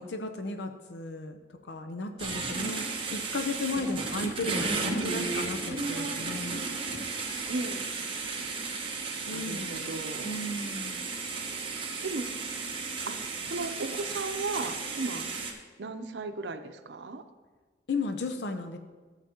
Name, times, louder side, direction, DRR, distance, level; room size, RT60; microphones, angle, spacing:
voice 1, 0.0-2.8 3.1-6.7 9.2-9.9 10.2-11.1 17.9-18.8, left 3 dB, 75° left, 7 dB, 0.6 m, -35 dB
sound 1, 2.2-15.5, right 4 dB, 30° right, 1.1 m, -34 dB
voice 2, 7.5-7.9 9.1-10.6 12.0-12.3 13.1-15.3 15.8-17.2, right 3 dB, 90° right, 8 dB, 0.6 m, -36 dB
13.0 x 7.4 x 2.9 m, 1.4 s
head